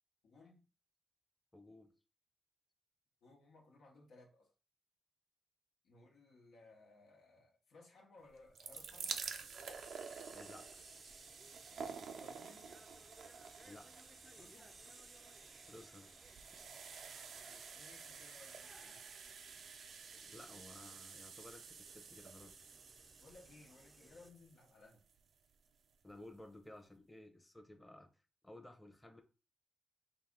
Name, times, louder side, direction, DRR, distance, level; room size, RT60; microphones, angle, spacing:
voice 1, 0.2-0.7 3.2-4.5 5.8-9.2 11.8-12.8 14.3-14.8 17.4-19.0 23.2-25.0, left 2 dB, 85° left, 1.1 m, -62 dB
voice 2, 1.5-1.9 10.3-10.9 13.7-14.1 15.7-16.1 20.3-22.6 26.0-28.1 28.4-29.2, left 1 dB, 10° left, 0.8 m, -56 dB
sound 1, 8.3-25.3 26.1-26.2 26.4-26.5, right 6 dB, 80° right, 0.5 m, -50 dB
sound 2, 8.7-24.3, right 1 dB, 15° right, 0.5 m, -62 dB
4.0 x 2.7 x 3.6 m
cardioid pair, 75°, 0 cm